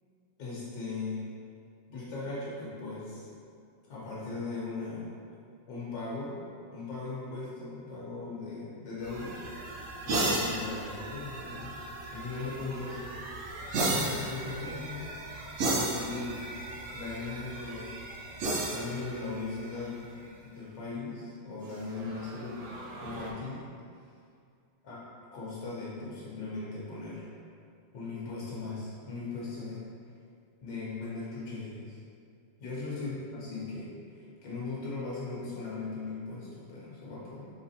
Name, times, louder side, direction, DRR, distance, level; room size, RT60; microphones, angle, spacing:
voice 1, 0.4-1.2 1.9-3.3 3.9-5.1 5.7-6.4 6.7-9.4 10.0-11.8 12.1-13.0 13.7-15.1 15.6-16.5 16.9-18.0 18.7-22.7 23.0-23.6 24.8-25.0 25.3-27.3 27.9-29.9 30.6-32.0 32.6-37.5, left 3 dB, 80° left, -7 dB, 1.5 m, -38 dB
sound 1, 9.0-20.2 21.7-23.3, right 2 dB, 65° right, 0.7 m, -35 dB
4.1 x 3.7 x 2.7 m, 2.3 s
omnidirectional pair, 1.9 m